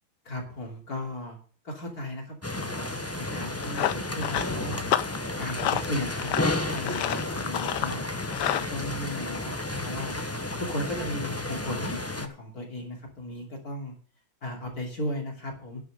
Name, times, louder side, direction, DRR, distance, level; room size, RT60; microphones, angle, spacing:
voice 1, 0.3-1.4 1.6-4.8 5.4-8.0 8.6-10.2 10.6-13.9 14.4-15.8, left 1 dB, 45° left, 1 dB, 3.4 m, -36 dB
sound 1, 2.4-12.3, left 2 dB, 20° left, 0.4 m, -32 dB
Run, 3.4-8.7, left 11 dB, 65° left, 1.2 m, -31 dB
11.0 x 6.2 x 7.8 m, 0.41 s
omnidirectional pair, 2.2 m